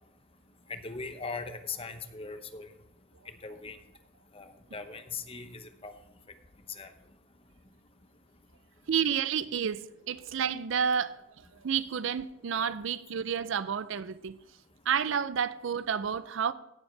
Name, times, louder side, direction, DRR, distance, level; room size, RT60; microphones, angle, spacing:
voice 1, 0.7-2.7 3.4-3.8 4.3-5.9 6.8-6.9, left 4 dB, 25° left, 0.9 m, -40 dB
voice 2, 8.9-14.4 14.9-16.5, right 7 dB, 65° right, 0.4 m, -30 dB
17.0 x 7.2 x 3.3 m
head